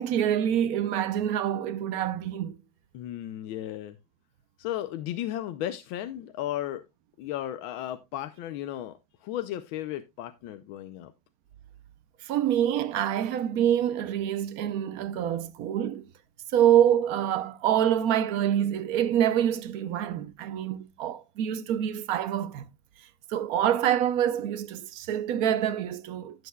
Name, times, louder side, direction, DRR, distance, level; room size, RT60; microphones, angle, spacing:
voice 1, 0.0-2.6 12.2-16.1 16.5-22.6 23.3-26.5, right 10 dB, 70° right, 0.9 m, -26 dB
voice 2, 2.9-4.0 4.6-6.8 7.2-11.1, left 12 dB, 85° left, 1.5 m, -35 dB
16.0 x 6.4 x 2.2 m
omnidirectional pair, 2.1 m